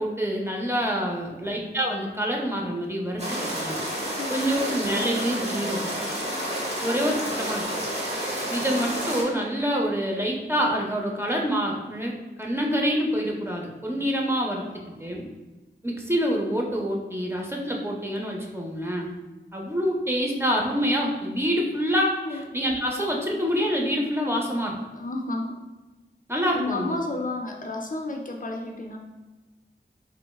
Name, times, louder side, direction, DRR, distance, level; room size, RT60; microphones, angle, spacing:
voice 1, 0.0-3.2 3.5-3.8 4.0-5.9 6.8-7.8 8.5-15.2 15.8-19.1 19.5-24.8 26.3-27.0, equal, 10° right, -1 dB, 0.5 m, -26 dB
sound 1, 3.2-9.2, right 1 dB, 35° right, 0.9 m, -30 dB
voice 2, 14.7-15.1 22.2-22.4 24.9-25.6 26.5-29.0, left 2 dB, 45° left, 2 dB, 0.4 m, -32 dB
3.3 x 3.1 x 2.2 m, 1.2 s
wide cardioid pair, 45°, 19 cm